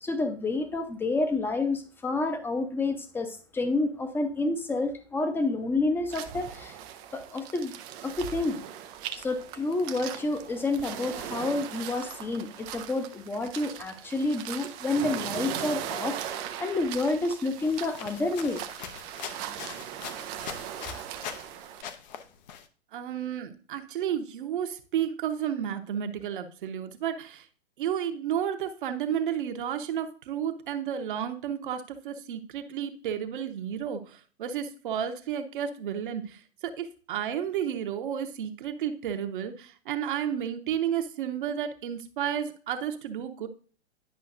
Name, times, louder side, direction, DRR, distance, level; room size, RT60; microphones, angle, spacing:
voice 1, 0.0-6.8 7.1-7.7 8.0-8.6 9.2-18.6, left 2 dB, 5° left, 7 dB, 0.7 m, -29 dB
sound 1, 6.1-21.8, right 10 dB, 20° right, 0.4 m, -39 dB
sound 2, 17.6-21.5 21.8-22.6, left 8 dB, 40° left, 0.8 m, -42 dB
voice 2, 22.9-27.5 27.8-43.5, right 9 dB, 50° right, 7 dB, 1.1 m, -32 dB
10.5 x 5.6 x 2.6 m, 0.41 s
figure-of-eight pair, 120°, 33 cm